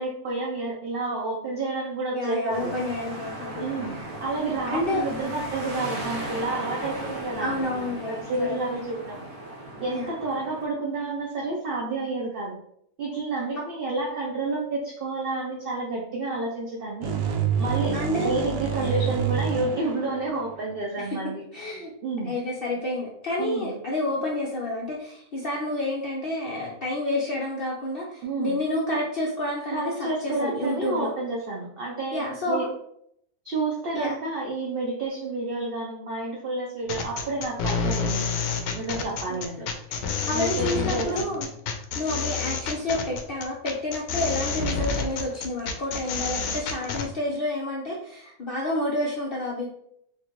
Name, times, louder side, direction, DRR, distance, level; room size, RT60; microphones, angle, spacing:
voice 1, 0.0-2.7 3.6-9.3 9.8-12.6 13.0-17.1 17.6-21.4 22.0-22.3 23.4-23.7 28.2-28.6 29.7-32.7 33.4-38.4 38.7-39.6 40.3-41.3, right 2 dB, 50° right, -3 dB, 0.7 m, -30 dB
voice 2, 2.1-4.1 4.6-5.1 7.4-8.6 9.9-10.2 17.9-18.6 21.0-21.2 21.5-21.9 22.2-31.1 32.1-32.7 33.9-34.1 39.3-39.7 40.3-41.5 41.9-49.7, left 1 dB, 55° left, -3 dB, 0.6 m, -29 dB
sound 1, 2.5-10.7, right 1 dB, 70° right, 1.3 m, -36 dB
sound 2, 17.0-20.8, right 7 dB, 90° right, 1.1 m, -28 dB
sound 3, 36.9-47.1, left 5 dB, 80° left, 1.1 m, -29 dB
4.3 x 2.4 x 3.0 m, 0.71 s
omnidirectional pair, 1.6 m